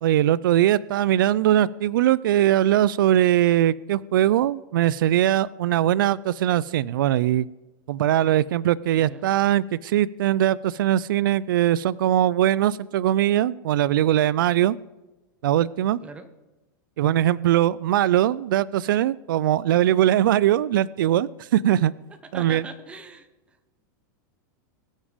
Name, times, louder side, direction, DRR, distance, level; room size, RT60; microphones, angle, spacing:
voice 1, 0.0-7.5 7.9-14.8 15.4-16.0 17.0-21.9 22.3-22.6, right 12 dB, 85° right, 20 dB, 0.4 m, -21 dB
voice 2, 9.0-9.3 16.0-16.3 22.3-23.7, right 3 dB, 10° right, 7 dB, 0.9 m, -41 dB
21.5 x 7.3 x 5.1 m, 1.0 s
supercardioid pair, 165°, 11 cm